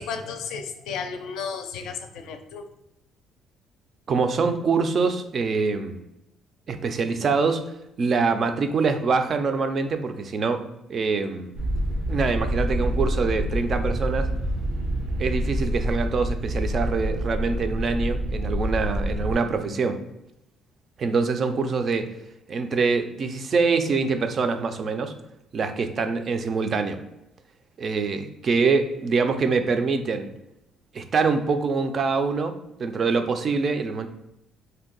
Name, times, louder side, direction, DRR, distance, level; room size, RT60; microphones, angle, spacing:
voice 1, 0.0-2.6, left 6 dB, 80° left, 6 dB, 0.4 m, -33 dB
voice 2, 4.1-6.0 6.7-7.6 8.0-11.5 12.1-14.3 15.2-20.0 21.0-22.1 22.5-25.1 25.5-27.0 27.8-30.3 30.9-32.5 32.8-34.1, right 4 dB, 40° right, 8 dB, 0.3 m, -24 dB
sound 1, 11.5-19.3, equal, 90° right, 0.6 m, -27 dB
2.6 x 2.1 x 3.7 m, 0.88 s
cardioid pair, 120°, 0 cm